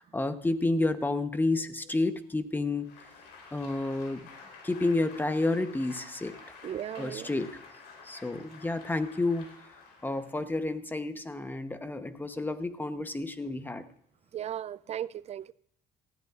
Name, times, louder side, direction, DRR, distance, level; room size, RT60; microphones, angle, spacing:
voice 1, 0.0-2.8 3.5-4.3 4.6-6.3 7.0-7.6 8.1-9.5 10.0-13.8, left 2 dB, 10° left, 0.9 m, -30 dB
Applause, 2.7-10.5, left 4 dB, 90° left, 3.7 m, -50 dB
voice 2, 6.6-7.3 14.3-15.5, right 10 dB, 40° right, 0.4 m, -36 dB
18.5 x 13.5 x 2.4 m
cardioid pair, 110°, 17 cm